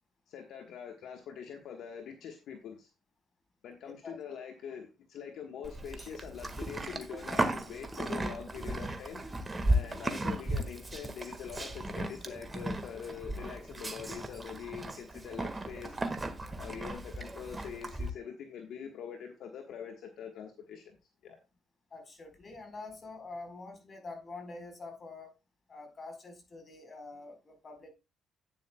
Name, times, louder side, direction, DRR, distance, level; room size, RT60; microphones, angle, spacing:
voice 1, 0.3-2.9 3.6-9.2 9.7-16.0 16.5-21.0 21.2-21.4, left 7 dB, 70° left, 1.3 m, -44 dB
Livestock farm animals working animals, 5.6-18.1, right 1 dB, 25° right, 1.6 m, -35 dB
voice 2, 21.9-25.4 25.7-27.9, left 3 dB, 40° left, 4.2 m, -46 dB
10.5 x 9.3 x 2.2 m
supercardioid pair, 65°, 0 cm